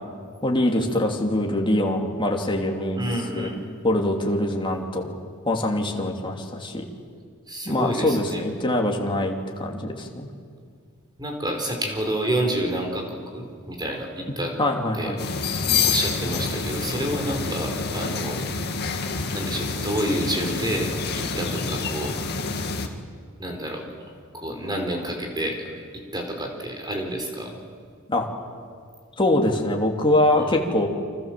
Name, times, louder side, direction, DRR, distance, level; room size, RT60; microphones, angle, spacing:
voice 1, 0.4-3.0 3.3-3.5 3.8-5.1 5.5-6.8 7.6-10.3 14.6-15.2 28.1-28.3 29.2-30.9, left 1 dB, 25° left, 1 dB, 2.9 m, -23 dB
voice 2, 2.9-3.6 7.5-8.4 11.2-14.5 15.0-15.1 15.8-18.4 19.3-20.9 21.1-22.2 23.4-23.8 24.3-27.6 30.4-30.6, right 1 dB, 20° right, 3 dB, 4.4 m, -29 dB
sound 1, 15.2-22.9, left 4 dB, 50° left, 2.1 m, -27 dB
29.5 x 25.0 x 7.6 m, 2.1 s
head